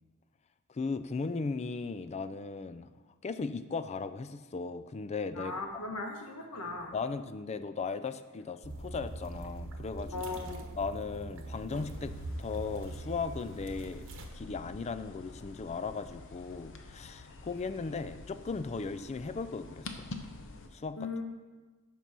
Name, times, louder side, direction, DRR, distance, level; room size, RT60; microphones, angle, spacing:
voice 1, 0.7-2.9 3.2-5.6 6.9-10.2 10.8-14.1 14.3-20.0 20.7-21.1, left 4 dB, 30° left, 11 dB, 0.4 m, -37 dB
voice 2, 5.3-6.9 10.1-10.7 21.0-21.2, left 3 dB, 85° left, 2 dB, 1.3 m, -38 dB
sound 1, 8.6-14.3, right 1 dB, 60° right, 1.0 m, -42 dB
sound 2, 11.7-20.7, left 2 dB, 60° left, 0.7 m, -48 dB
7.3 x 5.4 x 6.0 m, 1.3 s
head